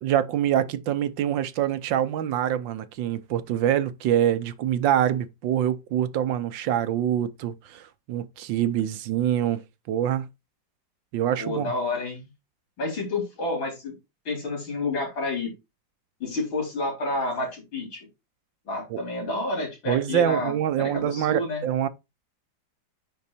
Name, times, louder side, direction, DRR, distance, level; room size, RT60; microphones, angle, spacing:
voice 1, 0.0-9.6 9.9-10.3 11.1-11.7 18.9-19.0 19.9-21.9, right 10 dB, 75° right, 1.5 m, -25 dB
voice 2, 11.4-12.3 12.8-13.9 14.2-15.5 16.2-18.1 18.6-21.7, left 2 dB, 90° left, 4.8 m, -29 dB
9.6 x 4.2 x 4.2 m
omnidirectional pair, 2.1 m